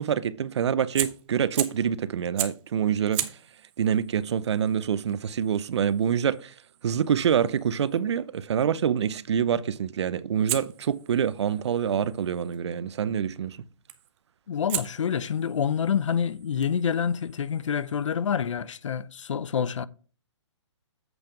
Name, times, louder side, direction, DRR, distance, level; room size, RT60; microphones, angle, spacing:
voice 1, 0.0-3.2 3.8-6.5 6.8-13.6, right 8 dB, 60° right, 0.6 m, -26 dB
Fire, 0.9-1.9 2.4-2.7 3.1-8.0 10.5-12.6 13.9-14.2 14.7-18.1, right 13 dB, 10° right, 0.3 m, -38 dB
voice 2, 14.5-19.9, left 7 dB, 75° left, 0.6 m, -27 dB
8.0 x 5.2 x 4.5 m
hypercardioid pair, 160°, 16 cm